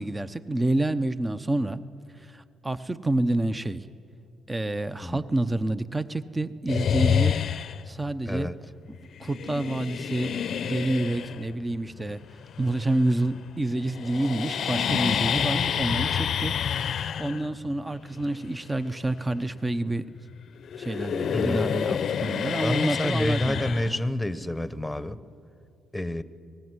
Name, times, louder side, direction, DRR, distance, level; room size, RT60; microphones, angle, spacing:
voice 1, 0.0-1.8 2.2-3.9 4.5-7.4 7.9-8.5 9.2-10.4 10.6-12.2 12.6-20.1 20.8-23.7, right 2 dB, 15° right, 13 dB, 0.8 m, -28 dB
sound 1, 6.7-8.0 9.2-13.5 13.7-20.3 20.6-24.5, left 8 dB, 60° left, 0.7 m, -28 dB
voice 2, 21.3-21.6 22.6-25.2 25.9-26.2, left 1 dB, 5° left, 13 dB, 1.0 m, -28 dB
25.5 x 19.0 x 9.6 m, 2.5 s
cardioid pair, 90°, 0 cm